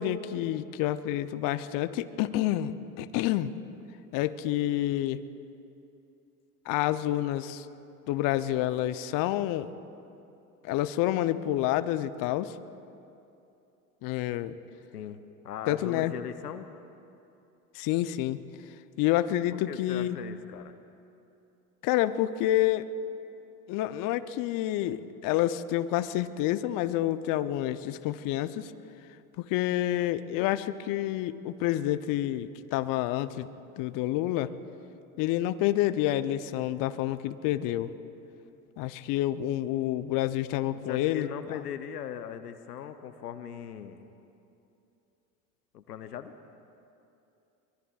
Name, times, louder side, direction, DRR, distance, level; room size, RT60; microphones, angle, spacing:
voice 1, 0.0-3.5 4.1-5.2 6.7-7.7 8.1-9.7 10.6-12.6 14.0-14.6 15.7-16.1 17.7-18.4 19.0-20.2 21.8-22.9 23.7-28.7 29.4-33.5 33.8-34.5 35.2-37.9 38.8-41.6, left 13 dB, 45° left, 12 dB, 0.7 m, -28 dB
voice 2, 14.9-16.7 19.5-20.7 40.7-44.1 45.7-46.3, left 9 dB, 90° left, 10 dB, 0.7 m, -40 dB
24.0 x 20.5 x 2.4 m, 2.7 s
hypercardioid pair, 80°, 45 cm